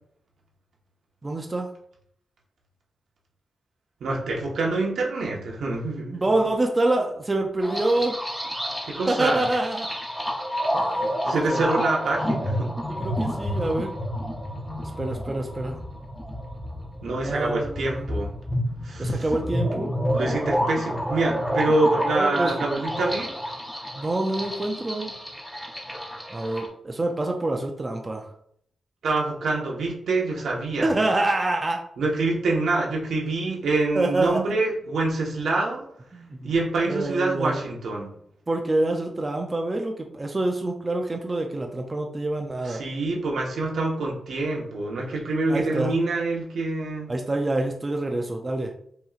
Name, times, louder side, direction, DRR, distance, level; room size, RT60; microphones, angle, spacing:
voice 1, 1.2-1.7 6.1-8.2 9.1-9.9 10.7-11.7 13.0-13.9 14.8-15.8 17.2-18.1 19.0-19.9 22.1-22.5 24.0-25.1 26.3-28.3 30.8-31.8 34.0-34.4 36.1-36.5 36.9-37.6 38.5-42.8 45.5-45.9 47.1-48.7, right 2 dB, 20° right, 2 dB, 0.4 m, -26 dB
voice 2, 4.0-6.2 8.8-9.4 11.2-12.7 17.0-18.3 18.8-19.2 20.1-23.3 29.0-30.9 32.0-35.8 36.4-38.1 42.6-47.1, right 2 dB, 80° right, -1 dB, 1.1 m, -26 dB
sound 1, 7.6-26.7, equal, 5° left, 0.8 m, -29 dB
5.4 x 2.9 x 2.4 m, 0.67 s
wide cardioid pair, 145°, 0 cm